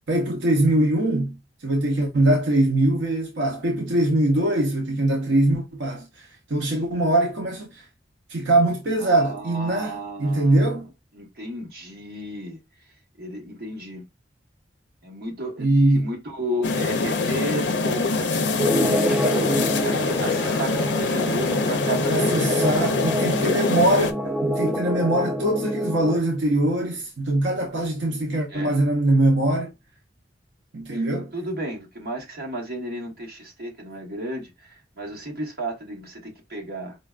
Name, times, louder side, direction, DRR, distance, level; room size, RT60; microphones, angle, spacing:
voice 1, 0.1-1.4 1.6-7.8 8.3-10.9 15.6-16.1 22.1-29.7 30.7-31.3, right 1 dB, 85° right, 0.7 m, -22 dB
voice 2, 9.0-10.6 11.1-12.6 13.2-14.0 15.0-15.7 15.9-19.3 19.6-22.4 28.5-28.8 30.9-31.0 31.3-37.0, right 1 dB, 60° right, 1.3 m, -33 dB
sound 1, 16.6-24.1, left 3 dB, 85° left, 0.5 m, -24 dB
sound 2, 18.6-26.1, equal, 5° right, 0.3 m, -27 dB
5.0 x 2.3 x 2.4 m
head